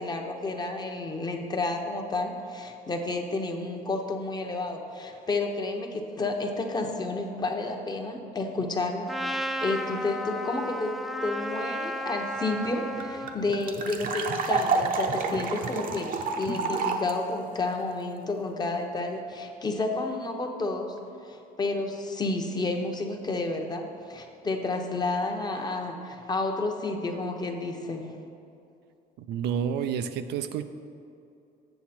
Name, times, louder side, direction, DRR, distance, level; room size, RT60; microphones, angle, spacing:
voice 1, 0.0-9.1 9.3-20.9 21.2-28.2, left 2 dB, 25° left, 3 dB, 0.9 m, -31 dB
Trumpet, 9.1-13.4, equal, ahead, 0.4 m, -33 dB
sound 1, 12.3-12.4 12.6-12.7 13.0-17.1, right 4 dB, 55° right, 0.8 m, -29 dB
voice 2, 29.2-30.7, right 8 dB, 80° right, 9 dB, 0.5 m, -29 dB
7.9 x 7.1 x 4.3 m, 2.6 s
cardioid pair, 110°, 17 cm